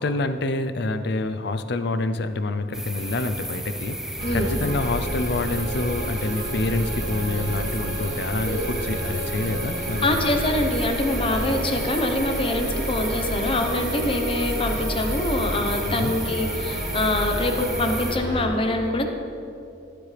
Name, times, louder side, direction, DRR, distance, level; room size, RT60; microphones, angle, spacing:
voice 1, 0.0-10.4 15.8-16.1, left 2 dB, 65° left, 10 dB, 0.6 m, -27 dB
sound 1, 2.7-18.2, right 1 dB, 5° right, 0.5 m, -34 dB
sound 2, 4.2-18.5, right 1 dB, 70° right, 1.6 m, -30 dB
voice 2, 10.0-19.0, left 1 dB, 30° left, 4 dB, 0.9 m, -24 dB
15.5 x 9.4 x 3.4 m, 2.6 s
head